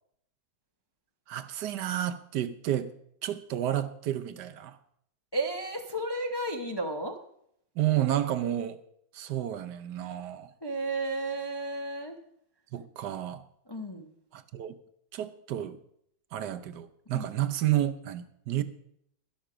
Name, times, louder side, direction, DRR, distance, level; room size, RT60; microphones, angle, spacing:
voice 1, 1.3-2.9 3.2-4.8 7.8-8.8 9.1-10.5 12.7-13.4 14.3-14.8 15.1-15.8 16.3-18.6, right 12 dB, 75° right, 1.3 m, -31 dB
voice 2, 5.3-7.2 10.6-12.2 13.7-14.1 17.1-17.3, right 2 dB, 25° left, 0.6 m, -33 dB
11.5 x 11.5 x 5.0 m
omnidirectional pair, 1.9 m